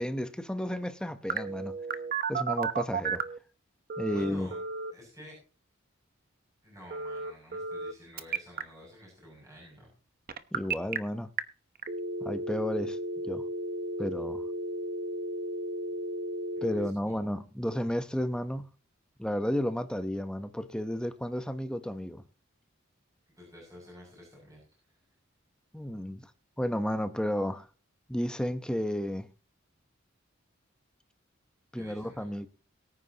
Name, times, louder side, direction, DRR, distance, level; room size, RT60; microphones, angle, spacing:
voice 1, 0.0-1.7 2.3-3.2 4.0-4.5 10.5-11.3 12.2-13.0 13.2-13.4 14.0-14.4 16.6-18.6 19.2-22.2 25.7-26.2 26.6-27.7 28.1-29.3 31.7-32.5, equal, 5° left, 0.9 m, -32 dB
Telephone, 1.3-3.4 3.9-4.9 6.9-7.9 8.2-8.6 10.3-11.0 11.4-11.5 11.8-16.9, right 3 dB, 45° right, 1.0 m, -33 dB
voice 2, 4.1-4.6 4.9-5.3 6.6-9.9 16.7-17.1 23.4-25.0 31.7-32.4, left 1 dB, 15° right, 7.1 m, -50 dB
23.0 x 9.7 x 2.9 m
head